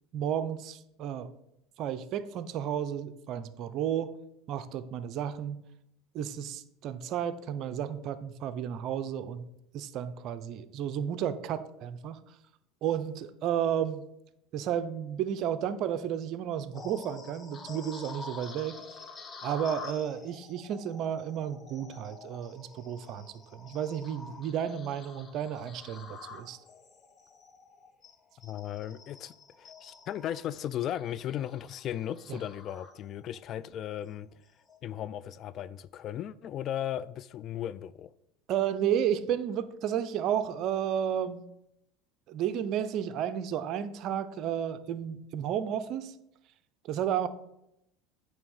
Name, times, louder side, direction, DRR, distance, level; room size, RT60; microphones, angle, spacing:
voice 1, 0.1-1.3 1.8-4.1 4.5-5.6 6.1-9.4 9.7-12.2 12.8-14.1 14.5-18.8 19.4-26.6 32.3-32.4 38.5-41.4 42.3-46.1 46.8-47.3, right 9 dB, 55° right, 0.6 m, -32 dB
sound 1, 16.7-33.4 33.8-34.1 34.6-34.8, left 4 dB, 30° left, 1.1 m, -48 dB
voice 2, 28.4-34.3 34.8-38.1, left 11 dB, 50° left, 0.3 m, -36 dB
9.0 x 3.4 x 6.5 m
supercardioid pair, 95°, 0 cm